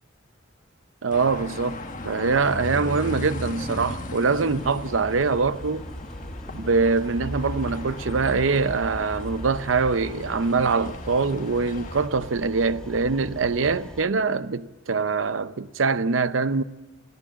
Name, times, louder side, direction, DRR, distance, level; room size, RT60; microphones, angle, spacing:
voice 1, 1.0-5.9 6.5-16.6, right 4 dB, 80° right, 0.7 m, -24 dB
sound 1, 1.1-12.1, left 2 dB, 40° left, 1.4 m, -37 dB
sound 2, 4.4-14.0, equal, 5° left, 1.5 m, -41 dB
sound 3, 5.5-12.1, equal, 55° right, 6.5 m, -41 dB
25.0 x 15.0 x 7.4 m
head